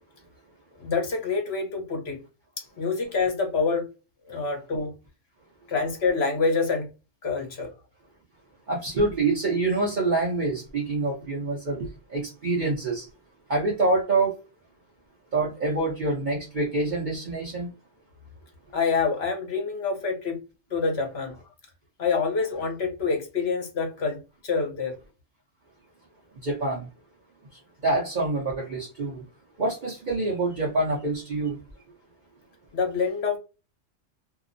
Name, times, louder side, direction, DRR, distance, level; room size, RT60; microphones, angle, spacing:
voice 1, 0.8-2.2 2.8-3.9 4.3-4.9 5.7-6.9 7.2-7.7 18.7-20.4 20.7-21.4 22.0-24.9 32.7-33.4, left 4 dB, 60° left, 1.0 m, -26 dB
voice 2, 8.7-11.9 12.1-13.1 13.5-14.3 15.3-17.7 26.4-26.9 27.8-29.2 29.6-31.6, right 2 dB, 45° right, 0.8 m, -26 dB
2.8 x 2.0 x 2.5 m
omnidirectional pair, 1.3 m